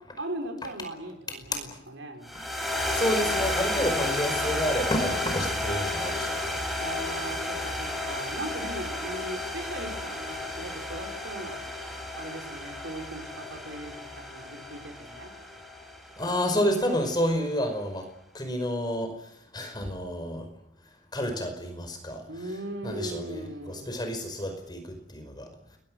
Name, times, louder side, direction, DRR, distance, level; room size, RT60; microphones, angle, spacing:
voice 1, 0.1-2.3 6.8-11.6 12.1-15.3 22.3-24.0, right 1 dB, 90° right, 2 dB, 5.6 m, -38 dB
sound 1, 2.2-16.7, left 1 dB, ahead, 6.2 m, -32 dB
voice 2, 2.3-6.7 16.2-18.1 18.3-20.5 21.1-22.2 22.8-25.5, equal, 25° left, 6 dB, 5.2 m, -30 dB
29.5 x 22.5 x 6.4 m, 0.73 s
head